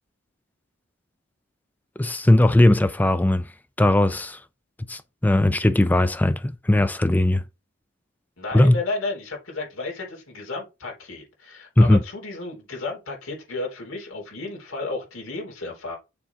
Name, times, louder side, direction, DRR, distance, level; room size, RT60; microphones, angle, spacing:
voice 1, 2.0-3.5 3.8-4.4 4.9-7.4 8.5-8.8 11.8-12.0, left 1 dB, 10° left, 0.3 m, -18 dB
voice 2, 8.4-15.9, left 3 dB, 75° left, 3.6 m, -33 dB
6.8 x 3.9 x 4.7 m
head